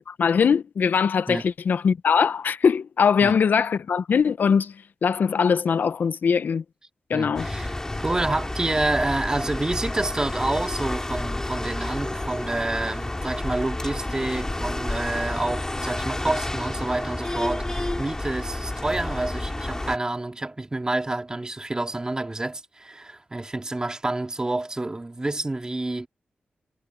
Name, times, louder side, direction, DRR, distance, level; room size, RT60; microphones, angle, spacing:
voice 1, 0.1-4.7 5.0-6.6 7.1-7.5, left 6 dB, 70° left, 0.7 m, -21 dB
voice 2, 7.1-26.1, right 2 dB, 25° right, 2.2 m, -28 dB
sound 1, 7.3-20.0, left 1 dB, 20° left, 2.9 m, -30 dB
cardioid pair, 80°, 3 cm